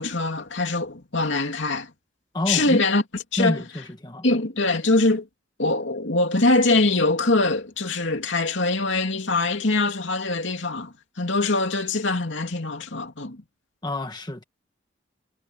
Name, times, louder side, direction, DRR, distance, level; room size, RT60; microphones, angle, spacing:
voice 1, 0.0-1.9 2.5-3.0 3.3-3.6 4.2-5.3 5.6-13.4, left 2 dB, 70° left, 2.7 m, -23 dB
voice 2, 2.3-2.8 3.4-4.2 13.8-14.4, left 1 dB, 20° left, 1.4 m, -28 dB
head